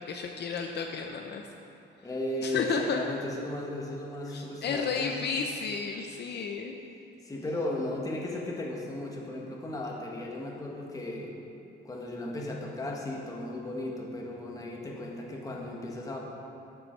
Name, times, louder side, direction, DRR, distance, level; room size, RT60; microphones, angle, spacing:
voice 1, 0.0-1.4 2.4-3.0 4.3-6.8, left 5 dB, 55° left, 3 dB, 0.6 m, -32 dB
voice 2, 2.0-5.1 7.2-11.3 11.8-16.2, left 1 dB, 15° left, -2 dB, 1.2 m, -35 dB
12.0 x 6.9 x 4.4 m, 2.8 s
wide cardioid pair, 170°, 20 cm